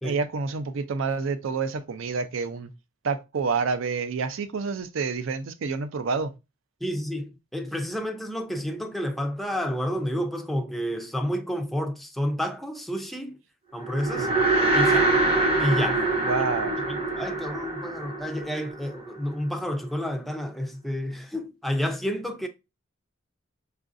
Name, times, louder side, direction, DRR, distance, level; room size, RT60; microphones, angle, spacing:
voice 1, 0.0-2.7 3.0-6.3 14.2-14.4 16.2-16.8, right 5 dB, 70° right, 0.4 m, -28 dB
voice 2, 6.8-13.4 13.7-14.3 14.7-15.1 15.6-16.0 16.9-22.5, equal, ahead, 0.3 m, -30 dB
sound 1, 13.8-19.3, right 2 dB, 30° right, 0.7 m, -24 dB
4.6 x 2.5 x 2.5 m
head